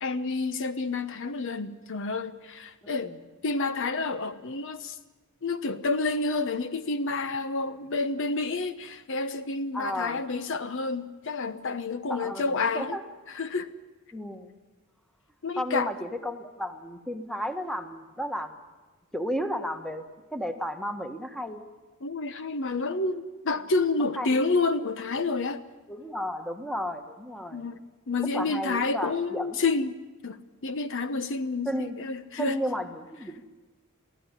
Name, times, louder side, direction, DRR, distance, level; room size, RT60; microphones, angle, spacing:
voice 1, 0.0-3.1 3.4-5.0 5.4-13.0 13.3-13.7 15.4-15.9 22.0-25.6 27.5-27.8 28.1-30.0 30.2-32.6, left 3 dB, 60° left, 1.0 m, -29 dB
voice 2, 2.8-3.2 9.7-10.2 12.1-13.0 14.1-14.5 15.6-18.6 19.1-20.0 20.3-21.6 24.1-24.4 25.9-27.7 28.3-29.5 31.6-32.0 32.4-33.5, equal, ahead, 1.5 m, -33 dB
24.0 x 15.0 x 10.0 m
head